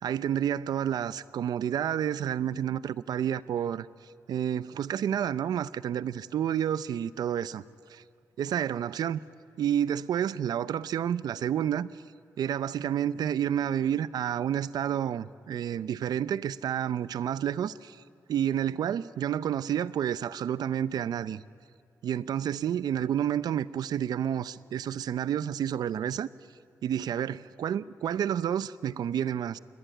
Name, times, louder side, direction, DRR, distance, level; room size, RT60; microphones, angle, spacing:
voice 1, 0.0-3.9 4.3-7.6 7.9-8.0 8.4-9.2 9.6-12.0 12.4-18.0 18.3-21.4 22.0-26.3 26.8-29.6, right 9 dB, 90° right, 0.6 m, -30 dB
27.0 x 21.5 x 9.1 m
cardioid pair, 80°, 7 cm